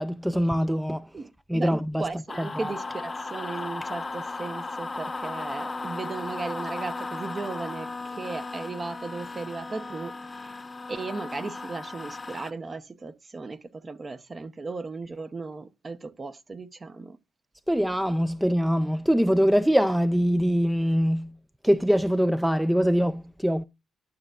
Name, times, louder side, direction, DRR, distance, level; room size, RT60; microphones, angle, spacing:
voice 1, 0.0-1.0 1.5-2.1 2.4-2.7 17.7-21.3 21.6-23.6, equal, 5° right, 0.4 m, -23 dB
voice 2, 1.1-1.7 2.0-10.1 10.9-17.2, right 3 dB, 30° right, 0.8 m, -36 dB
sound 1, 2.3-12.5, left 3 dB, 25° left, 0.8 m, -36 dB
11.5 x 6.8 x 2.4 m
cardioid pair, 90°, 0 cm